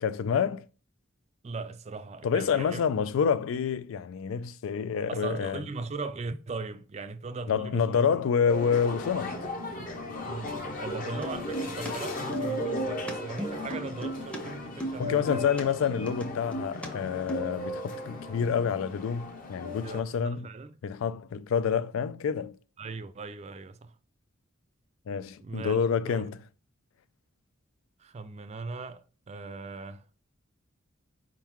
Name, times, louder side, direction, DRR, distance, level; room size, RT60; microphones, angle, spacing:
voice 1, 0.0-0.7 2.2-5.6 7.5-9.4 15.0-20.5 20.8-22.6 25.1-26.4, left 7 dB, 85° left, 0.3 m, -28 dB
voice 2, 1.4-2.8 5.1-8.2 10.2-15.5 19.8-20.8 22.8-24.0 25.4-25.8 26.1-26.3 28.0-30.0, right 3 dB, 35° right, 0.4 m, -39 dB
sound 1, 8.4-20.0, left 1 dB, 45° left, 0.7 m, -36 dB
sound 2, 11.2-11.9 12.2-14.4 14.7-15.6 16.1-16.9 17.1-17.5, right 1 dB, 5° left, 0.6 m, -36 dB
4.6 x 3.7 x 3.0 m
head